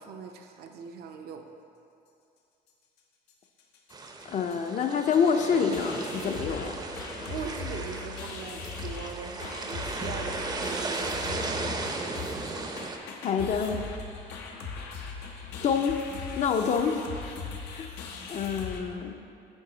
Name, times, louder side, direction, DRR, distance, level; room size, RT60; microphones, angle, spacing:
voice 1, 0.0-1.4 7.3-12.4, right 6 dB, 70° right, 5 dB, 0.5 m, -41 dB
sound 1, 3.3-3.4 3.6-3.9 4.2-4.3 4.5-18.8, left 5 dB, 85° left, 0.7 m, -40 dB
sound 2, 3.9-13.0, right 3 dB, 25° right, 0.5 m, -36 dB
voice 2, 4.3-6.8 13.2-13.8 15.6-16.0 16.4-17.0 17.7-17.9 18.3-19.2, left 6 dB, 45° left, 6 dB, 0.5 m, -27 dB
7.2 x 4.7 x 3.9 m, 2.6 s
cardioid pair, 110°, 17 cm